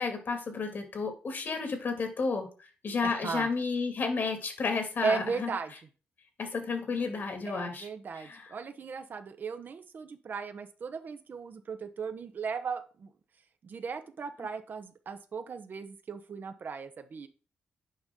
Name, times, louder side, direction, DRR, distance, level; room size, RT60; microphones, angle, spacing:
voice 1, 0.0-5.5 6.4-7.9 8.1-8.5, left 4 dB, 55° left, 5 dB, 2.3 m, -32 dB
voice 2, 3.0-3.5 5.0-5.7 7.5-13.1 13.6-17.3, right 5 dB, 50° right, 9 dB, 0.9 m, -36 dB
8.7 x 5.2 x 3.7 m, 0.36 s
cardioid pair, 90°, 4 cm